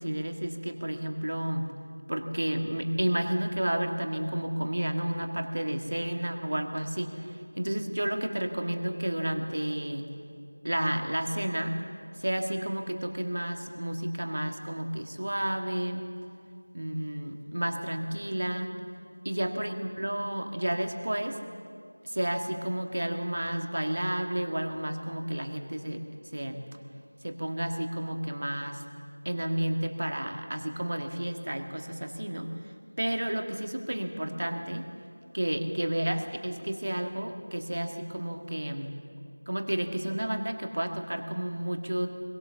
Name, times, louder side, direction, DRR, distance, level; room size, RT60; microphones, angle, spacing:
voice 1, 0.0-1.7 2.1-10.1 10.6-11.8 12.2-16.0 16.7-18.7 19.3-21.4 22.0-26.0 26.3-26.6 27.2-28.8 29.3-32.5 33.0-34.9 35.3-38.9 39.5-42.1, right 1 dB, 40° right, 5 dB, 1.7 m, -31 dB
21.5 x 19.0 x 7.1 m, 2.3 s
figure-of-eight pair, 175°, 0 cm